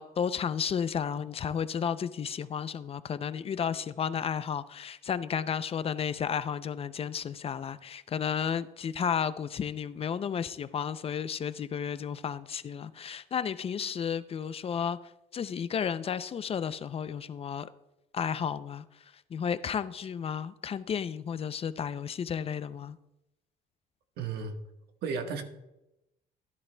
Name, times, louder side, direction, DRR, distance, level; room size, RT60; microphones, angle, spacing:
voice 1, 0.0-15.0 15.3-17.7 18.1-18.8 19.3-23.0, left 7 dB, 35° left, 0.4 m, -32 dB
voice 2, 24.2-24.6 25.0-25.4, right 5 dB, 70° right, 1.3 m, -33 dB
16.5 x 10.5 x 2.2 m
cardioid pair, 110°, 17 cm